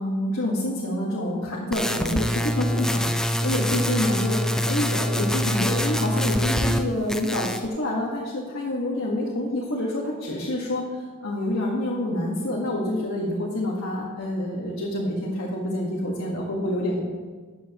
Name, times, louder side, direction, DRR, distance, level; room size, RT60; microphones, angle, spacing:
voice 1, 0.0-17.1, left 1 dB, 65° left, -4 dB, 1.6 m, -27 dB
sound 1, 1.7-6.8 7.1-7.7, equal, 5° left, 0.4 m, -25 dB
14.0 x 8.9 x 3.0 m, 1.4 s
head